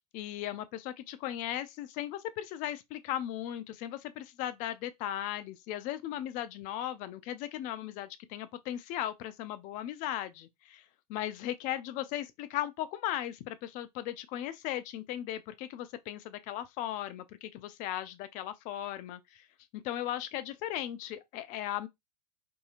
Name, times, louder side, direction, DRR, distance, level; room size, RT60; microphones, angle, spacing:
voice 1, 0.0-19.5 19.7-21.9, left 12 dB, 40° left, 0.5 m, -37 dB
2.7 x 2.7 x 2.4 m
hypercardioid pair, 100°, 20 cm